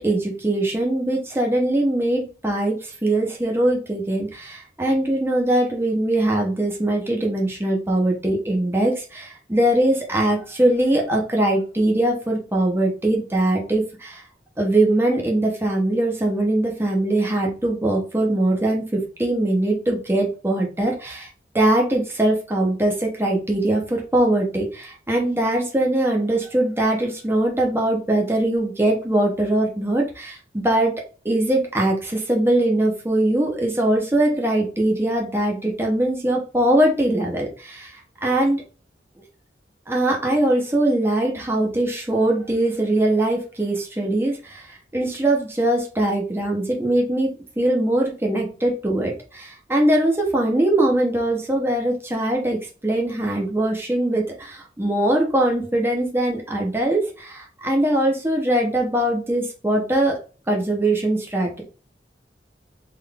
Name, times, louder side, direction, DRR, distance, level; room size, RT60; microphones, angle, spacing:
voice 1, 0.0-14.2 14.6-21.3 21.5-30.9 31.2-37.9 38.2-38.6 39.9-60.2 60.5-61.6, right 1 dB, 15° right, 0 dB, 0.7 m, -21 dB
3.8 x 2.5 x 3.4 m, 0.36 s
head